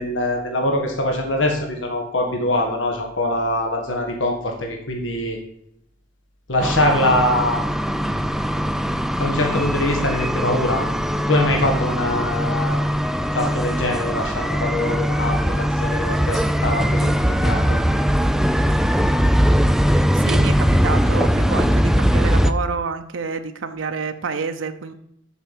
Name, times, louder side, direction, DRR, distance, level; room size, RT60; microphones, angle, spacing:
voice 1, 0.0-5.4 6.5-7.6 9.2-10.9 11.3-13.0 13.3-17.8, left 1 dB, 75° left, 2 dB, 1.5 m, -23 dB
sound 1, 6.6-22.5, equal, ahead, 0.3 m, -20 dB
voice 2, 20.1-20.5 20.8-24.9, right 5 dB, 90° right, 7 dB, 0.7 m, -28 dB
7.1 x 5.6 x 7.3 m, 0.74 s
head